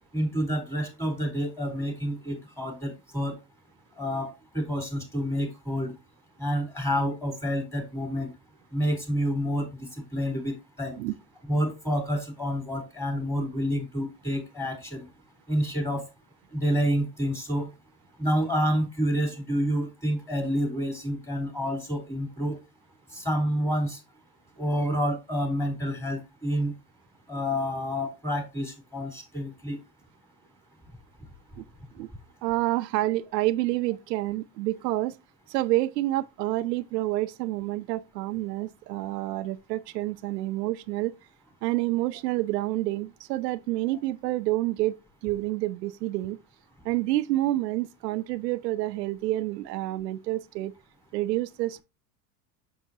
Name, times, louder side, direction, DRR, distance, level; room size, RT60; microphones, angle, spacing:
voice 1, 0.1-3.4 4.0-5.9 6.4-8.3 8.7-11.0 11.5-15.0 15.5-16.0 16.5-17.7 18.2-22.6 23.1-24.0 24.6-26.7 27.3-29.8, equal, 5° left, 3.9 m, -28 dB
voice 2, 32.4-35.2 35.5-41.1 41.6-44.9 45.2-46.4 46.8-50.7 51.1-51.8, right 16 dB, 85° right, 0.6 m, -28 dB
7.3 x 6.9 x 2.8 m
hypercardioid pair, 95°, 48 cm